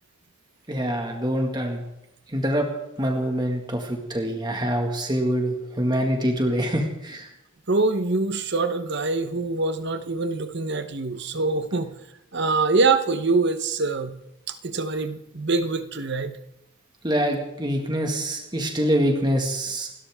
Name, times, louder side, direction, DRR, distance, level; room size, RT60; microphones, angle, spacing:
voice 1, 0.7-1.8 2.3-2.7 3.0-7.3 17.0-19.9, equal, 20° right, 2 dB, 2.0 m, -25 dB
voice 2, 7.7-11.9 12.3-14.2 14.5-16.4, right 3 dB, 50° right, 10 dB, 1.1 m, -24 dB
28.5 x 13.0 x 3.7 m, 0.87 s
head